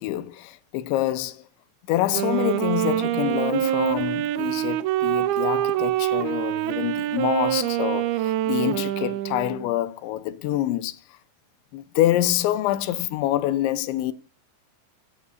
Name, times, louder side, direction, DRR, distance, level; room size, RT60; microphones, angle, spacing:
voice 1, 0.0-1.4 1.9-11.0 11.7-14.1, left 14 dB, 85° left, 3.2 m, -26 dB
Wind instrument woodwind instrument, 2.0-9.7, right 13 dB, 85° right, 2.2 m, -25 dB
17.0 x 9.3 x 2.7 m
omnidirectional pair, 5.3 m